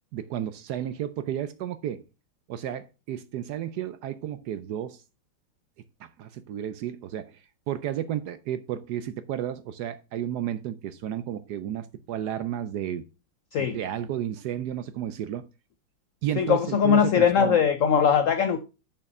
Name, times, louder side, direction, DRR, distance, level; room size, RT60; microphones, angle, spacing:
voice 1, 0.1-2.0 2.5-5.0 6.0-13.0 13.6-15.5 16.2-17.6, right 11 dB, 70° right, 1.0 m, -32 dB
voice 2, 16.4-18.6, left 7 dB, 90° left, 0.7 m, -21 dB
6.7 x 5.9 x 5.2 m
omnidirectional pair, 2.1 m